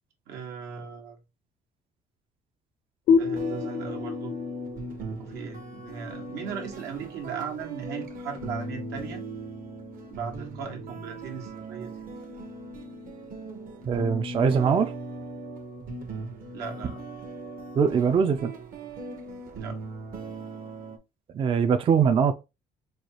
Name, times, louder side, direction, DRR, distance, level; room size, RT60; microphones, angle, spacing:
voice 1, 0.3-1.2 3.2-4.3 5.2-9.2 10.1-11.9 16.5-17.0 19.5-19.8, right 6 dB, 85° right, 1.2 m, -38 dB
sound 1, 3.1-6.5, left 5 dB, 65° left, 0.6 m, -28 dB
sound 2, 3.3-21.0, right 2 dB, 55° right, 0.9 m, -38 dB
voice 2, 13.9-14.9 17.8-18.5 21.3-22.3, right 6 dB, 30° right, 0.4 m, -22 dB
4.6 x 2.3 x 2.8 m
cardioid pair, 110°, 17 cm